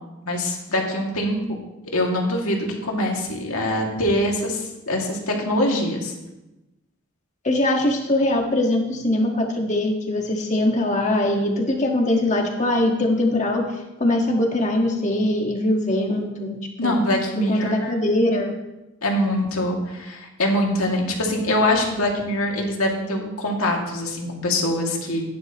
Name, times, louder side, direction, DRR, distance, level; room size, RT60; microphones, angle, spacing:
voice 1, 0.3-1.6 1.9-6.1 16.8-17.9 19.0-25.2, left 1 dB, 85° left, 0 dB, 2.3 m, -23 dB
voice 2, 7.4-13.6 14.0-17.0 17.4-18.5, left 1 dB, 35° left, 1 dB, 1.6 m, -22 dB
14.5 x 10.5 x 3.0 m, 0.99 s
head